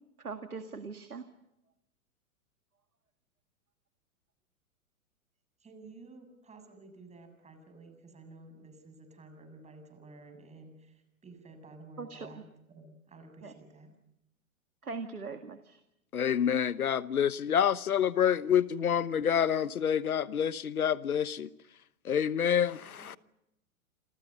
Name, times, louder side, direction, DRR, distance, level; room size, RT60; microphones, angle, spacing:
voice 1, 0.2-1.2 12.0-12.3 13.4-13.5 14.8-15.8, right 4 dB, 90° right, 2.0 m, -40 dB
voice 2, 5.6-14.0 22.8-23.2, right 2 dB, 15° right, 7.3 m, -52 dB
voice 3, 16.1-21.5 22.0-23.2, left 8 dB, 80° left, 1.2 m, -27 dB
28.5 x 27.5 x 5.5 m
figure-of-eight pair, 110°, 43 cm